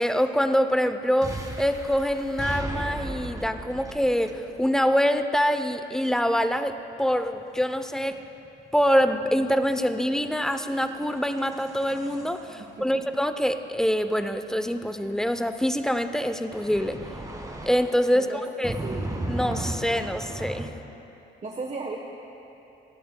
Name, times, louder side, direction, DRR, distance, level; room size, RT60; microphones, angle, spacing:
voice 1, 0.0-8.2 8.7-17.0 17.6-18.8 19.3-20.7, equal, 5° left, 9 dB, 0.5 m, -25 dB
sound 1, 1.2-4.9 6.7-15.2 16.5-18.1 18.6-20.7, right 1 dB, 15° right, 1.6 m, -36 dB
voice 2, 18.8-19.2 21.4-22.0, right 3 dB, 35° right, 1 dB, 1.0 m, -35 dB
29.0 x 10.5 x 2.2 m, 2.9 s
cardioid pair, 90°, 20 cm